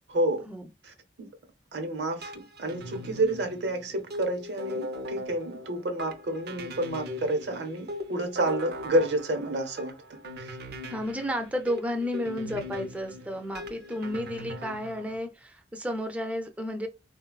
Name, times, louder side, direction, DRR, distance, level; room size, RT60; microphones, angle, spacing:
voice 1, 0.1-0.4 0.8-1.3 1.7-9.9 10.4-10.6, right 1 dB, 85° right, 0.9 m, -29 dB
sound 1, 2.2-15.2, left 1 dB, 65° right, 0.6 m, -40 dB
voice 2, 10.9-16.9, equal, 10° right, 0.3 m, -32 dB
3.7 x 2.2 x 2.2 m
head